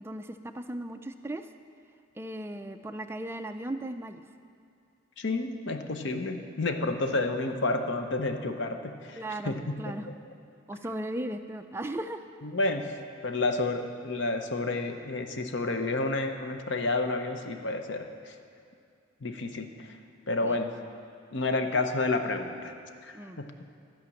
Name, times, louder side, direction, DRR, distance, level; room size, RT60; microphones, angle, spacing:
voice 1, 0.0-1.5 2.2-4.2 9.2-10.1 10.7-12.2 20.4-20.6 23.1-23.4, right 1 dB, 10° right, 7 dB, 0.3 m, -37 dB
voice 2, 5.2-9.2 9.4-9.9 12.4-12.9 13.2-18.3 19.2-19.9 20.3-20.7 21.3-22.7 23.0-23.5, left 2 dB, 60° left, 6 dB, 0.7 m, -30 dB
14.0 x 5.1 x 7.2 m, 2.4 s
head